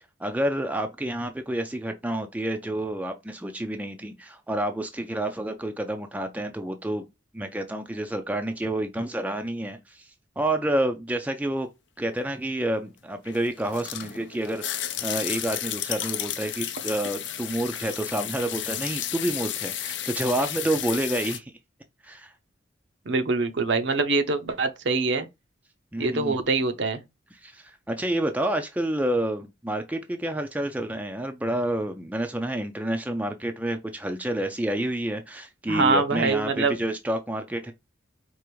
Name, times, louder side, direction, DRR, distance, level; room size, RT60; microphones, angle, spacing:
voice 1, 0.2-7.1 7.3-10.1 10.4-11.7 12.0-21.5 22.0-22.3 25.9-26.4 27.4-37.7, right 1 dB, 10° right, 0.4 m, -29 dB
sound 1, 13.3-21.4, left 11 dB, 65° left, 0.5 m, -33 dB
voice 2, 23.1-25.3 26.0-27.0 35.7-36.8, right 3 dB, 65° right, 0.6 m, -24 dB
4.7 x 2.5 x 3.0 m
head